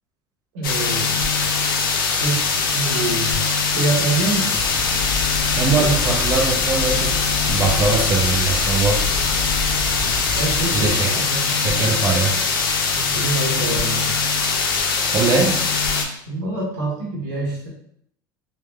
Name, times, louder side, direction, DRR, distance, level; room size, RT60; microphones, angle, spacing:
voice 1, 0.5-1.2 2.2-4.6 5.8-6.0 10.0-11.5 12.9-14.1 16.3-17.7, right 3 dB, 70° right, -4 dB, 1.0 m, -26 dB
sound 1, 0.6-16.0, left 4 dB, 85° left, 0.5 m, -21 dB
sound 2, 4.6-10.9, left 4 dB, 25° left, 1.3 m, -29 dB
voice 2, 5.6-7.2 7.4-9.1 10.7-11.2 11.5-12.5 15.1-15.9, right 4 dB, 35° right, 2 dB, 0.5 m, -21 dB
3.2 x 2.2 x 2.2 m, 0.69 s
hypercardioid pair, 90°, 11 cm